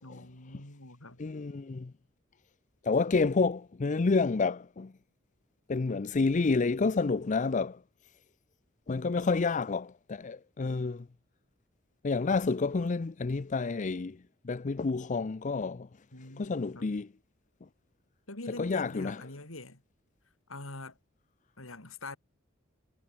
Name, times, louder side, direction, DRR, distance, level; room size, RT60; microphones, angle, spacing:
voice 1, 0.0-1.2 16.1-17.0 18.3-19.8 20.5-21.0 21.6-22.2, left 2 dB, 90° left, 4.5 m, -44 dB
voice 2, 1.2-1.9 2.8-4.9 5.7-7.8 8.9-11.1 12.0-14.2 14.4-15.9 16.4-17.1 18.6-19.2, left 4 dB, 35° left, 0.5 m, -29 dB
head